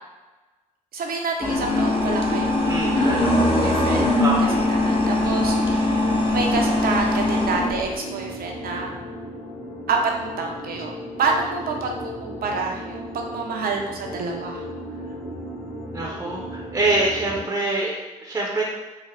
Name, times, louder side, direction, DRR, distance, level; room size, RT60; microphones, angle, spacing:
voice 1, 0.9-4.2 4.7-8.9 9.9-14.6, right 4 dB, 60° right, 1 dB, 0.6 m, -28 dB
sound 1, 1.4-8.0, left 2 dB, 30° left, 0.7 m, -21 dB
voice 2, 2.7-3.5 4.2-4.7 15.9-18.6, right 2 dB, 15° right, -3 dB, 0.7 m, -25 dB
sound 2, 3.4-17.4, equal, 90° left, 1.0 m, -36 dB
3.6 x 2.1 x 3.3 m, 1.2 s
hypercardioid pair, 45°, 17 cm